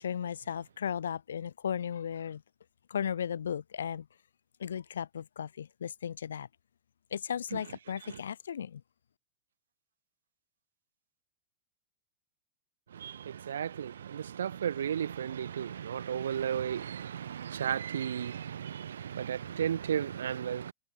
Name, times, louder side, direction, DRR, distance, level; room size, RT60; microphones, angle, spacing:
voice 1, 0.0-2.4 2.9-4.1 4.6-6.5 7.1-8.8, left 8 dB, 65° left, 0.4 m, -35 dB
voice 2, 12.9-20.7, right 9 dB, 65° right, 0.4 m, -34 dB
figure-of-eight pair, 90°, 0 cm